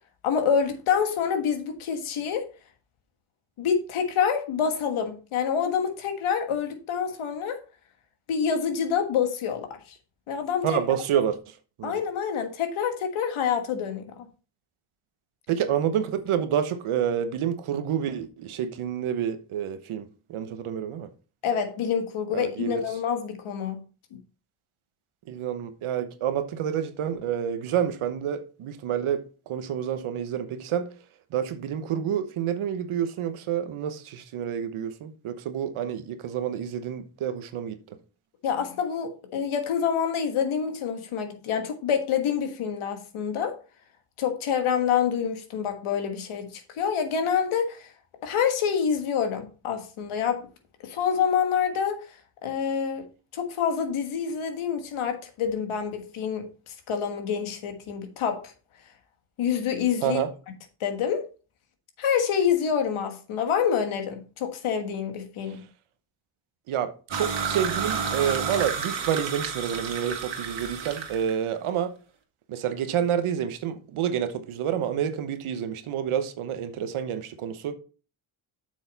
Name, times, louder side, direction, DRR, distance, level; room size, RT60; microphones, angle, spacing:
voice 1, 0.2-2.5 3.6-7.6 8.3-9.7 10.3-10.8 11.8-14.3 21.4-23.8 24.1-24.2 38.4-43.6 44.2-47.9 48.2-50.5 50.8-53.1 53.3-58.5 59.4-60.2 60.8-61.3 62.0-65.6, left 7 dB, 80° left, 1.6 m, -27 dB
voice 2, 10.6-11.4 11.8-12.0 15.5-21.1 22.3-22.9 25.3-30.9 31.3-37.8 60.0-60.3 65.5-65.6 66.7-71.9 72.5-77.8, right 9 dB, 80° right, 1.1 m, -28 dB
sound 1, 67.1-71.3, right 6 dB, 65° right, 1.9 m, -30 dB
7.6 x 6.3 x 4.0 m
supercardioid pair, 55°, 48 cm